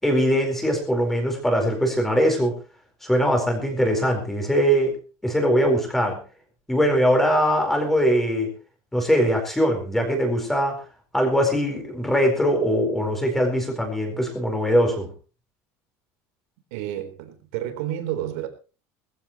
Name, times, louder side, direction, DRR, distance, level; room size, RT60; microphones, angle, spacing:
voice 1, 0.0-2.6 3.0-4.9 5.2-6.2 6.7-8.5 8.9-10.8 11.1-15.1, equal, 5° left, 4.5 m, -21 dB
voice 2, 16.7-18.5, right 12 dB, 85° right, 3.9 m, -30 dB
20.5 x 15.0 x 3.1 m
cardioid pair, 175°, 7 cm